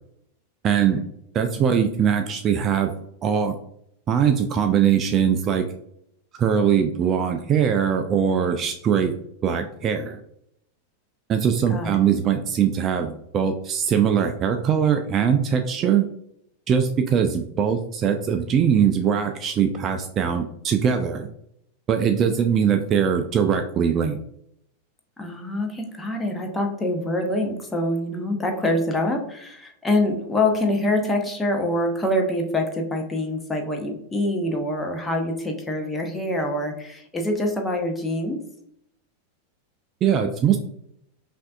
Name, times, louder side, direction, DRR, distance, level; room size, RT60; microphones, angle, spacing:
voice 1, 0.6-1.0 1.3-2.9 3.2-3.6 4.1-5.7 6.3-9.1 9.4-10.2 11.3-16.1 16.7-21.3 21.9-24.2 40.0-40.6, right 8 dB, 30° right, 6 dB, 0.3 m, -21 dB
voice 2, 25.2-38.4, left 1 dB, 10° left, 2 dB, 0.8 m, -25 dB
5.5 x 2.6 x 2.4 m, 0.73 s
figure-of-eight pair, 90°, 0 cm